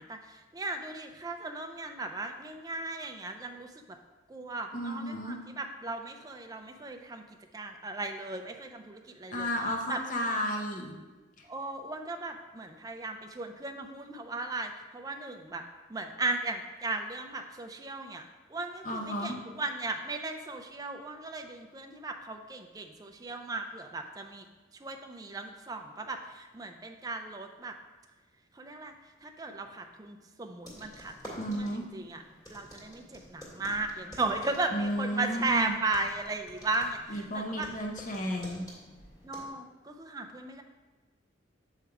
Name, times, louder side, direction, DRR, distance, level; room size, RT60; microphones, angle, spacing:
voice 1, 0.0-4.0 4.3-7.2 7.5-9.5 9.9-10.0 11.5-15.6 15.9-24.5 24.7-27.7 28.5-28.9 29.2-32.2 32.5-37.7 39.2-40.6, right 2 dB, 20° right, 5 dB, 0.4 m, -36 dB
voice 2, 4.7-5.4 9.3-10.9 18.8-19.4 31.3-31.8 34.7-35.8 37.1-38.6, equal, 40° left, 1 dB, 0.8 m, -33 dB
sound 1, 30.6-39.5, equal, 20° left, 2.0 m, -50 dB
7.2 x 3.4 x 4.7 m, 1.2 s
head